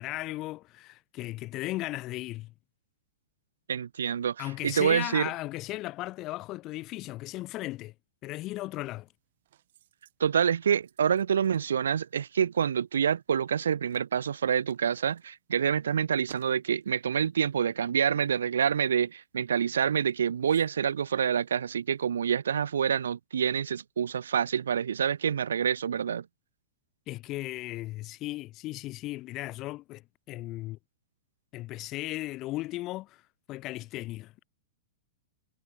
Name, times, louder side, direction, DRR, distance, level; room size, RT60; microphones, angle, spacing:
voice 1, 0.0-2.5 4.4-7.9 8.2-9.1 27.1-30.8 31.5-33.2 33.5-34.4, left 17 dB, 35° left, 1.3 m, -36 dB
voice 2, 3.7-5.3 10.2-26.2, right 8 dB, 85° right, 0.6 m, -27 dB
sound 1, 8.6-22.4, right 13 dB, 65° right, 5.0 m, -61 dB
hypercardioid pair, 130°, 0 cm